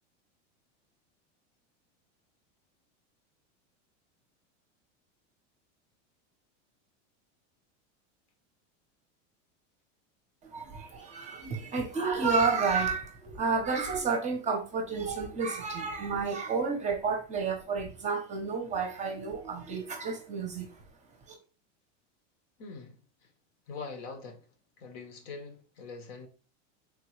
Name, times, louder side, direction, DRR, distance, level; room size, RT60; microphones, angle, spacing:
voice 1, 10.4-20.7 21.3-21.4, right 4 dB, 20° right, 0.6 m, -31 dB
voice 2, 22.6-23.3 23.7-24.5 24.8-26.3, left 4 dB, 70° left, 1.0 m, -43 dB
3.6 x 2.3 x 3.0 m
supercardioid pair, 140°, 37 cm